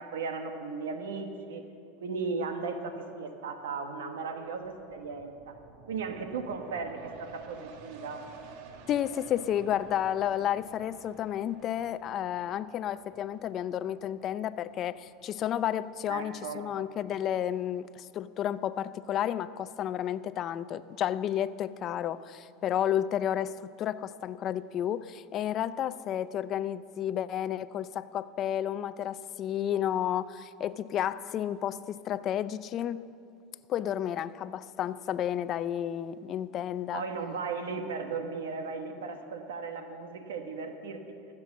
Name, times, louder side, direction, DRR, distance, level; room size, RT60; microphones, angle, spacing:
voice 1, 0.0-1.6 2.0-5.6 5.9-8.2 16.1-16.7 36.9-41.0, right 4 dB, 90° right, 6 dB, 1.2 m, -36 dB
sound 1, 4.5-17.7 18.2-18.3, right 5 dB, 60° right, 1.2 m, -52 dB
voice 2, 8.9-33.1 33.7-37.0, left 10 dB, 40° left, 16 dB, 0.4 m, -31 dB
14.5 x 7.6 x 7.3 m, 2.6 s
supercardioid pair, 120°, 0 cm